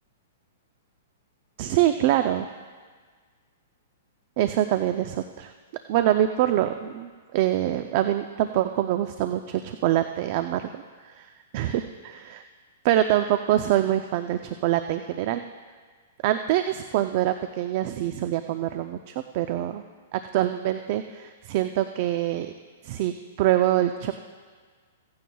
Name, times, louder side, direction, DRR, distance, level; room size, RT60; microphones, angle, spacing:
voice 1, 1.6-2.5 4.4-5.5 5.9-11.3 11.5-12.4 12.8-15.4 16.2-19.8 20.1-22.5 22.8-24.1, right 13 dB, 50° right, 8 dB, 0.5 m, -25 dB
16.5 x 15.0 x 2.3 m, 1.6 s
hypercardioid pair, 140°, 0 cm